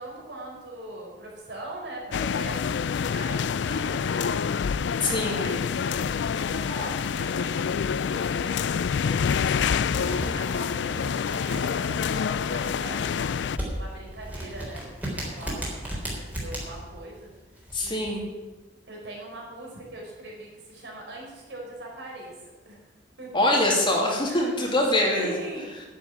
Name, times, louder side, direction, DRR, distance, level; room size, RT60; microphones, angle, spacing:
voice 1, 0.0-4.6 5.0-17.3 17.8-18.2 18.9-22.8 23.2-23.3 24.2-24.7 25.2-25.8, right 2 dB, 70° right, -1 dB, 4.6 m, -41 dB
sound 1, 2.1-13.6, left 6 dB, 75° left, 0.4 m, -27 dB
voice 2, 5.0-5.4 17.7-18.2 23.3-25.3, left 1 dB, 30° left, -1 dB, 2.7 m, -23 dB
sound 2, 9.8-18.1, equal, 10° right, 3.9 m, -36 dB
10.5 x 7.7 x 9.4 m, 1.2 s
head